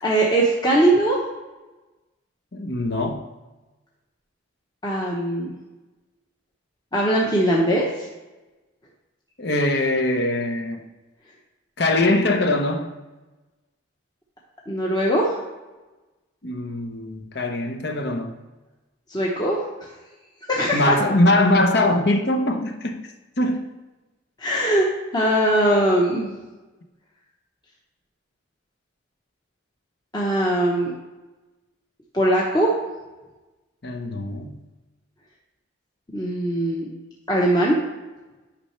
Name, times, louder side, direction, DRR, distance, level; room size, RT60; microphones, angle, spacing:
voice 1, 0.0-1.2 4.8-5.6 6.9-8.1 14.7-15.4 19.1-19.6 20.5-21.0 24.4-24.9 25.1-26.3 30.1-30.9 32.1-32.7 36.1-36.9 37.3-37.8, right 1 dB, 20° left, -4 dB, 0.9 m, -20 dB
voice 2, 2.5-3.3 9.4-10.8 11.8-12.9 16.4-18.4 20.7-23.0 23.4-23.7 33.8-34.6, left 1 dB, 55° left, 5 dB, 0.8 m, -22 dB
9.6 x 5.6 x 3.2 m, 1.1 s
head